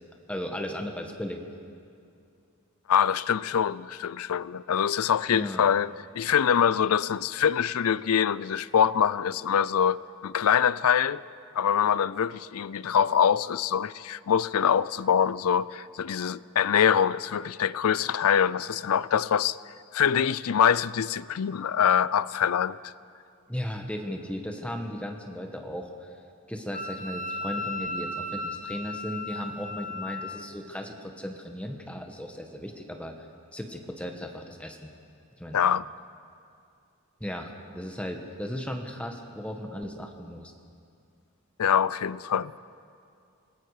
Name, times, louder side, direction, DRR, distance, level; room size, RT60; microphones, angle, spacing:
voice 1, 0.3-1.4 5.3-5.6 23.5-26.1 26.5-33.1 33.5-34.9 35.4-35.6 37.2-40.5, equal, 5° left, 1.3 m, -36 dB
voice 2, 2.9-11.2 11.6-19.6 19.9-22.9 35.5-35.9 41.6-42.6, left 8 dB, 80° left, 0.5 m, -24 dB
Wind instrument woodwind instrument, 26.7-30.5, left 2 dB, 35° left, 0.8 m, -35 dB
27.0 x 20.0 x 4.9 m
head